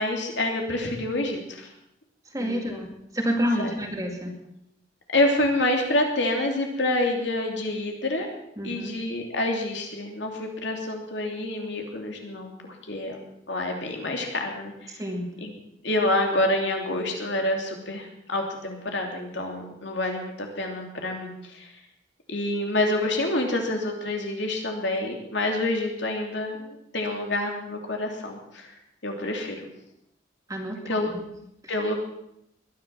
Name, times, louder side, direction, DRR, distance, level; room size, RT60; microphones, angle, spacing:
voice 1, 0.0-1.7 2.4-2.9 3.6-3.7 5.1-8.3 8.6-12.5 12.8-13.2 13.5-15.0 15.4-15.5 15.8-21.7 22.3-28.7 29.0-29.6 30.9-31.1 31.7-32.0, left 1 dB, 65° left, 2 dB, 3.1 m, -27 dB
voice 2, 2.3-4.3 8.6-9.0 14.9-15.3 30.5-31.3 31.6-31.7, equal, 15° right, 2 dB, 2.2 m, -29 dB
21.0 x 11.0 x 6.0 m, 0.79 s
head